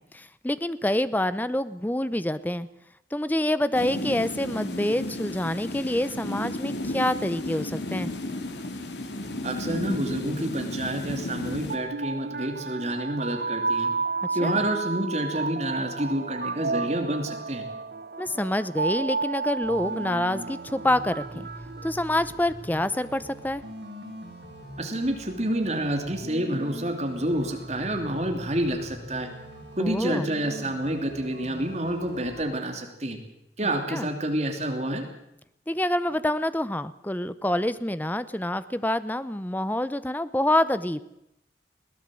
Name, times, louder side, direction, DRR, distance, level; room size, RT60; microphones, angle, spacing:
voice 1, 0.0-2.7 3.1-8.1 14.4-14.6 18.2-21.5 21.8-23.6 29.8-30.3 33.9-34.1 35.7-41.0, left 1 dB, 10° left, 14 dB, 0.7 m, -27 dB
sound 1, 3.7-11.8, left 1 dB, 80° left, 2.3 m, -33 dB
voice 2, 9.4-13.9 14.3-17.6 24.8-29.3 29.8-33.2 33.6-35.1, right 1 dB, 40° right, 4 dB, 3.0 m, -28 dB
sound 2, 11.5-22.6, right 4 dB, 55° right, 1.0 m, -32 dB
sound 3, 19.6-32.4, equal, 75° right, 8.0 m, -42 dB
21.0 x 17.0 x 7.8 m, 0.80 s
head